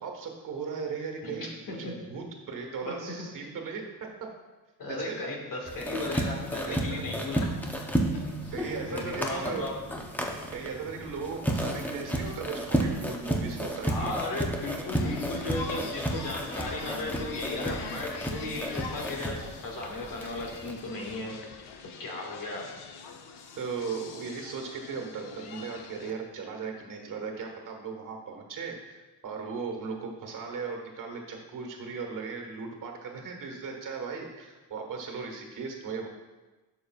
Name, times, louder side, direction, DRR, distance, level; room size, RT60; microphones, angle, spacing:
voice 1, 0.0-3.8 4.9-5.3 6.7-6.8 8.5-9.6 10.5-14.1 16.2-16.3 23.6-36.1, right 5 dB, 50° right, 3 dB, 1.4 m, -37 dB
voice 2, 1.2-1.8 2.8-3.2 4.8-7.4 8.4-8.5 8.9-9.7 13.9-21.5 22.0-22.6, left 2 dB, 55° left, -1 dB, 1.9 m, -35 dB
sound 1, 5.7-20.7, right 1 dB, 5° left, 0.6 m, -32 dB
sound 2, 14.9-26.1, left 5 dB, 75° left, 0.9 m, -43 dB
11.5 x 6.8 x 2.4 m, 1.2 s
cardioid pair, 155°, 40 cm